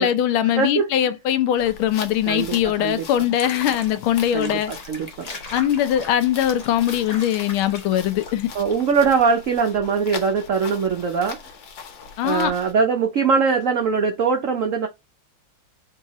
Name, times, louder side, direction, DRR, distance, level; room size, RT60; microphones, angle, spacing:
voice 1, 0.0-4.7 5.5-8.5 12.2-12.5, left 11 dB, 85° left, 1.5 m, -21 dB
voice 2, 0.6-0.9 2.3-3.1 4.3-4.6 4.9-5.3 8.5-11.4 12.2-14.9, right 5 dB, 90° right, 0.7 m, -21 dB
sound 1, 1.6-12.7, left 5 dB, 70° left, 1.8 m, -40 dB
Water / Bathtub (filling or washing), 3.3-8.7, left 2 dB, 35° left, 0.6 m, -39 dB
4.6 x 2.7 x 2.9 m
omnidirectional pair, 2.2 m